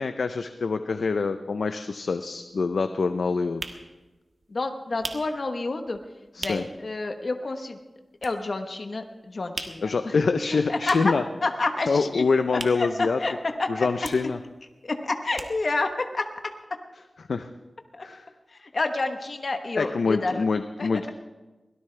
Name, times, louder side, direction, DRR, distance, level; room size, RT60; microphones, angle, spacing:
voice 1, 0.0-3.7 6.3-6.6 9.8-11.2 11.9-13.2 13.7-14.4 17.3-17.5 18.0-18.2 19.8-21.1, left 4 dB, 90° left, 8 dB, 0.7 m, -25 dB
sound 1, 1.7-1.8 2.1-6.9 7.2-7.3 7.6-8.8 9.1-13.6 13.9-15.9 16.2-16.3 16.5-16.6, right 3 dB, 55° right, 1.5 m, -40 dB
voice 2, 4.5-6.0 6.4-7.8 8.2-10.1 10.7-11.1 11.4-12.2 12.7-12.9 13.2-13.3 13.6-13.9 14.8-16.3 17.9-18.1 18.7-20.4 20.8-20.9, left 3 dB, 55° left, 5 dB, 1.2 m, -29 dB
23.5 x 17.5 x 3.4 m, 1.2 s
wide cardioid pair, 105°, 0 cm